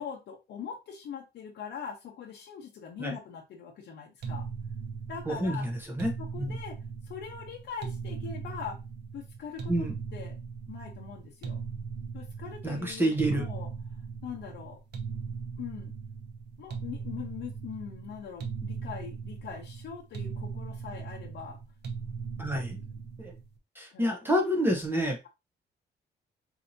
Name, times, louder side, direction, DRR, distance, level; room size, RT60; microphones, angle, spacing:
voice 1, 0.0-4.4 5.1-5.7 6.2-6.8 7.1-8.8 9.1-10.4 10.7-11.6 12.1-14.8 15.6-15.9 16.6-21.6 22.4-22.8 23.9-24.1, left 7 dB, 75° left, 0 dB, 0.7 m, -42 dB
sound 1, 4.2-23.5, right 5 dB, 70° right, 0.8 m, -39 dB
voice 2, 5.3-6.1 6.4-6.6 9.7-10.0 12.6-13.4 22.4-22.8 23.2-23.3 23.8-25.3, equal, 10° right, 1 dB, 0.6 m, -28 dB
4.4 x 2.7 x 2.6 m, 0.24 s
cardioid pair, 165°, 18 cm